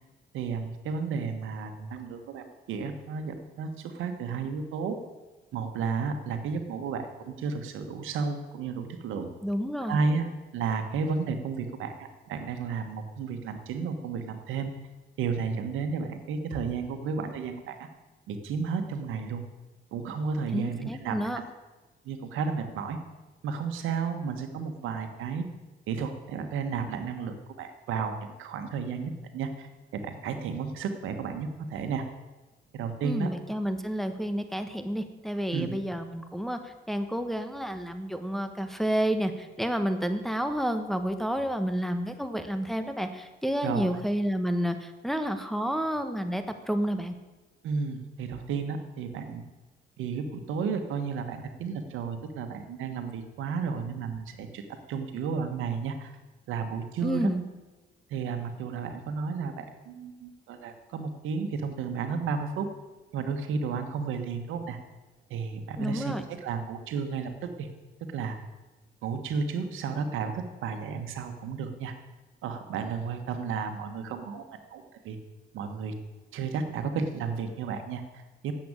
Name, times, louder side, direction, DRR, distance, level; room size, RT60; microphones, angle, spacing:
voice 1, 0.3-5.0 5.5-9.3 9.8-10.2 10.5-14.7 15.2-17.9 18.3-19.4 19.9-21.2 22.0-23.0 23.4-25.5 25.9-32.0 32.7-33.3 35.5-35.7 43.6-44.0 47.6-49.4 50.0-56.1 56.5-57.3 58.1-62.7 63.1-64.8 65.3-67.7 68.1-68.4 69.0-71.9 72.4-74.4 74.7-75.2 75.5-75.9 76.3-78.5, right 5 dB, 85° right, 7 dB, 1.4 m, -32 dB
voice 2, 9.4-10.0 20.5-21.4 33.0-47.1 57.0-57.4 65.8-66.2, equal, ahead, 7 dB, 1.2 m, -30 dB
10.5 x 7.9 x 8.8 m, 1.2 s
cardioid pair, 90°, 20 cm